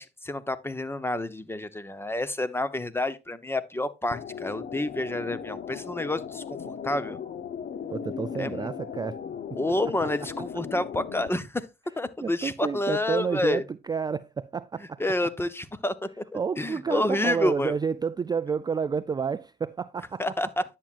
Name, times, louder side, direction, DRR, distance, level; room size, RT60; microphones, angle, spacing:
voice 1, 0.0-7.2 8.4-8.7 9.5-11.7 12.0-13.6 15.0-16.2 16.6-17.7 20.2-20.6, left 1 dB, 10° left, 0.8 m, -29 dB
sound 1, 4.1-11.3, left 7 dB, 50° left, 0.7 m, -37 dB
voice 2, 7.9-9.2 12.2-15.0 16.3-20.2, right 6 dB, 20° right, 0.3 m, -30 dB
10.5 x 7.4 x 2.4 m
cardioid pair, 90°, 20 cm